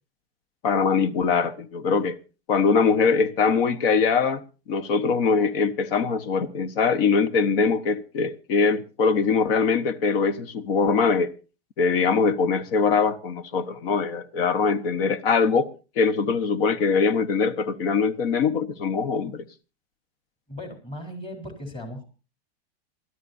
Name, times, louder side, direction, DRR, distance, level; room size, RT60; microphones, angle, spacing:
voice 1, 0.6-2.2 2.5-4.4 4.7-11.3 11.8-15.7 16.0-19.4, left 5 dB, 60° left, 1.3 m, -22 dB
voice 2, 20.5-22.1, left 1 dB, 15° left, 4.0 m, -37 dB
27.0 x 13.0 x 2.7 m
supercardioid pair, 145°, 32 cm